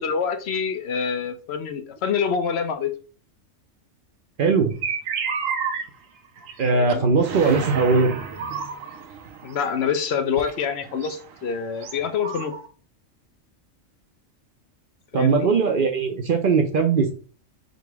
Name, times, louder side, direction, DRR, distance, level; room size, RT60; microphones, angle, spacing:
voice 1, 0.0-2.9 6.7-7.1 9.4-12.6 15.1-15.5, left 6 dB, 60° left, 0.8 m, -26 dB
voice 2, 4.4-4.7 6.6-8.1 15.1-17.1, right 4 dB, 50° right, 0.7 m, -20 dB
sound 1, 4.7-5.9 6.2-6.6 6.9-7.0 7.2-9.8 10.4-12.7, right 6 dB, 80° right, 1.1 m, -31 dB
3.9 x 2.9 x 4.6 m
omnidirectional pair, 1.3 m